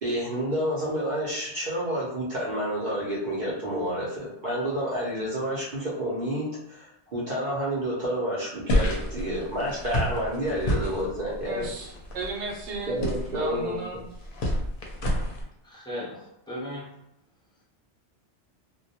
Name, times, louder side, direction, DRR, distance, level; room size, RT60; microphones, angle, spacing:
voice 1, 0.0-11.7 12.9-13.7, equal, 50° right, -7 dB, 0.7 m, -29 dB
sound 1, 8.7-15.4, left 1 dB, 60° left, 0.7 m, -30 dB
voice 2, 11.4-13.0 13.3-14.1, right 2 dB, 80° right, -1 dB, 0.9 m, -34 dB
voice 3, 15.6-16.9, left 1 dB, 5° left, -7 dB, 0.6 m, -37 dB
2.2 x 2.1 x 2.7 m, 0.79 s
omnidirectional pair, 1.2 m